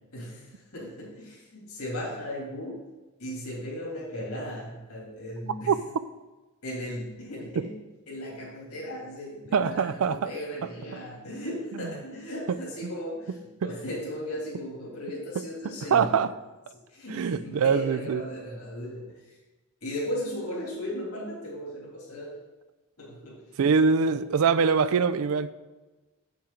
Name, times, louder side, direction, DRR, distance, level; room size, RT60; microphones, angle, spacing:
voice 1, 0.1-2.8 3.2-5.7 6.6-7.7 8.1-13.3 13.6-16.2 16.9-19.4 19.8-22.4 23.0-23.4, equal, 75° left, -5 dB, 2.9 m, -36 dB
voice 2, 9.5-10.3 15.9-16.3 17.1-18.2 23.6-25.5, right 5 dB, 65° right, 14 dB, 0.4 m, -23 dB
7.5 x 7.1 x 3.8 m, 1.2 s
head